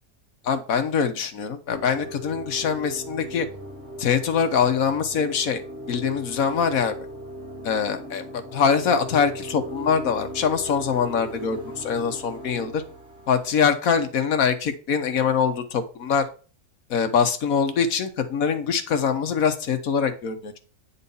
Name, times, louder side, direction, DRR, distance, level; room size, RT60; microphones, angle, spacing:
voice 1, 0.4-3.5 4.0-6.9 7.6-12.8 13.3-16.3 16.9-20.6, left 6 dB, 60° left, 8 dB, 1.4 m, -23 dB
sound 1, 1.7-13.7, equal, 40° right, 1.7 m, -38 dB
9.3 x 4.2 x 5.4 m, 0.37 s
omnidirectional pair, 1.8 m